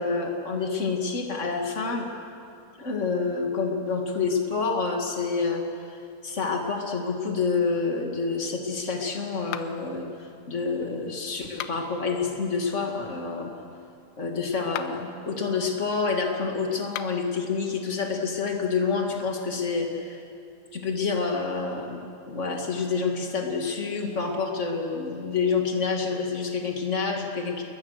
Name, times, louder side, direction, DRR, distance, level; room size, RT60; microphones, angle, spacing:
voice 1, 0.0-2.0 2.8-5.6 6.2-10.1 10.5-13.5 14.2-20.2 20.7-27.6, left 4 dB, 55° left, 1 dB, 0.8 m, -28 dB
sound 1, 9.5-10.0 11.5-12.0 14.6-15.1 16.8-17.3, left 12 dB, 85° left, 3.0 m, -37 dB
29.5 x 22.0 x 6.6 m, 2.5 s
omnidirectional pair, 5.0 m